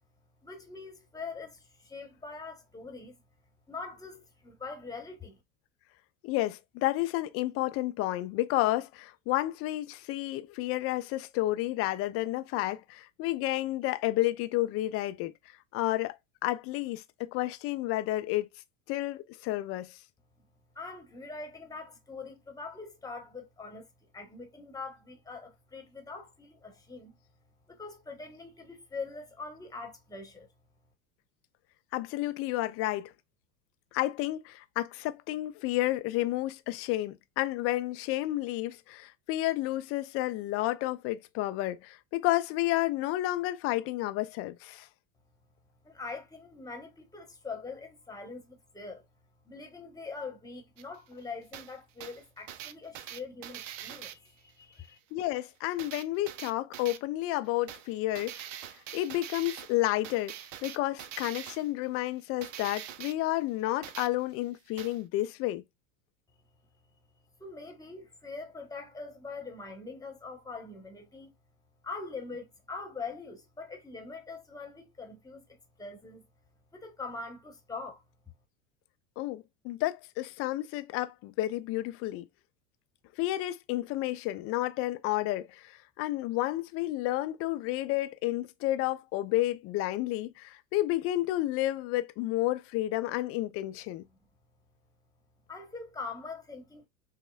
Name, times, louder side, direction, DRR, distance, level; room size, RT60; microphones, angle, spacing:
voice 1, 0.4-3.2 3.7-5.4 20.7-27.1 27.7-30.5 45.8-49.1 49.4-55.0 67.4-71.3 71.8-76.2 76.7-78.0 95.5-96.9, left 4 dB, 10° left, 1.0 m, -43 dB
voice 2, 6.2-15.3 15.7-16.2 16.4-18.5 18.9-20.0 31.9-33.1 33.9-44.9 55.1-58.5 58.9-60.3 60.6-65.6 79.2-82.3 83.2-94.0, left 16 dB, 35° left, 0.4 m, -31 dB
sound 1, 50.8-50.9 51.5-51.7 52.0-54.1 55.8-57.0 57.7-57.9 58.2-59.8 60.0-61.7 62.4-63.1 63.8-64.1 64.8-65.0, right 11 dB, 65° right, 0.5 m, -43 dB
5.5 x 2.0 x 2.3 m
hypercardioid pair, 80°, 41 cm